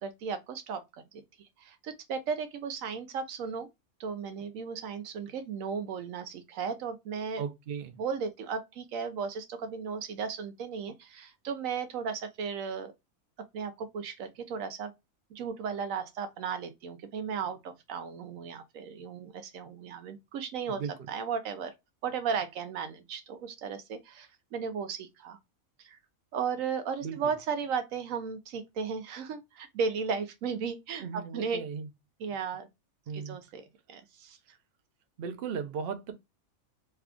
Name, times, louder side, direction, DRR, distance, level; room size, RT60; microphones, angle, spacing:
voice 1, 0.0-1.2 1.6-3.7 4.0-7.4 8.0-12.9 13.5-14.9 15.3-20.8 21.1-21.7 22.0-25.4 25.8-26.0 26.3-31.6 32.2-32.7 33.1-34.6, right 6 dB, 75° right, 1.0 m, -35 dB
voice 2, 7.4-8.0 20.7-21.1 27.0-27.3 31.0-31.9 33.1-33.4 35.2-36.1, right 6 dB, 55° right, 0.7 m, -37 dB
3.3 x 2.3 x 3.6 m
omnidirectional pair, 1.5 m